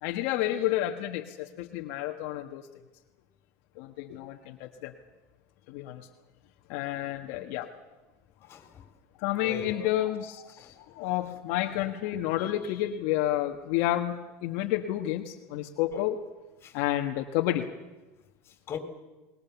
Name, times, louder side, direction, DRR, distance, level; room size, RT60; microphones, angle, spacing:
voice 1, 0.0-2.7 3.8-4.9 5.7-6.1 6.7-7.7 9.2-16.2 16.7-17.7, left 13 dB, 70° left, 1.5 m, -30 dB
voice 2, 8.4-8.8 9.4-9.9 10.6-11.4 15.9-16.1 16.6-16.8 18.4-18.8, left 7 dB, 35° left, 3.8 m, -41 dB
28.5 x 20.5 x 7.2 m
supercardioid pair, 125°, 7 cm